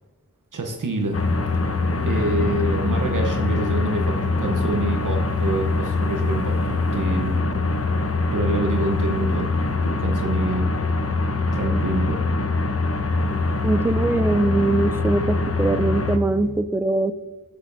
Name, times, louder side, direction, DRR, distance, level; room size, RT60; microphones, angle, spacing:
voice 1, 0.5-1.3 2.0-7.7 8.3-9.5 9.8-10.7 11.5-12.2, right 2 dB, 80° right, 2 dB, 0.9 m, -27 dB
sound 1, 0.9-16.6, left 3 dB, 70° left, 1.1 m, -44 dB
sound 2, 1.1-16.2, left 3 dB, 50° left, 0.8 m, -23 dB
voice 2, 13.6-17.1, right 2 dB, 10° right, 12 dB, 0.4 m, -22 dB
17.0 x 6.8 x 2.6 m, 1.4 s
wide cardioid pair, 50°, 31 cm